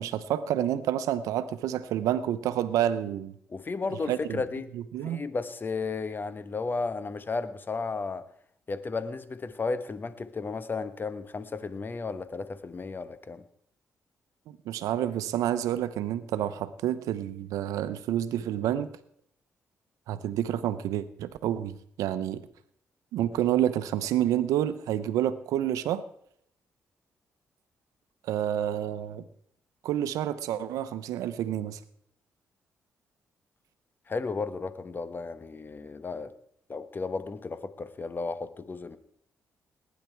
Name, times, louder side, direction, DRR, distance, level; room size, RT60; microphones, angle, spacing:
voice 1, 0.0-3.3 4.1-4.4 4.9-5.2 14.7-18.9 20.1-22.4 23.1-26.0 28.2-29.2 29.8-31.8, right 11 dB, 90° right, 0.8 m, -29 dB
voice 2, 3.5-4.7 5.0-8.3 8.7-13.4 34.1-36.3 36.7-39.0, left 4 dB, 35° left, 1.1 m, -34 dB
19.0 x 9.7 x 4.6 m
cardioid pair, 65°, 6 cm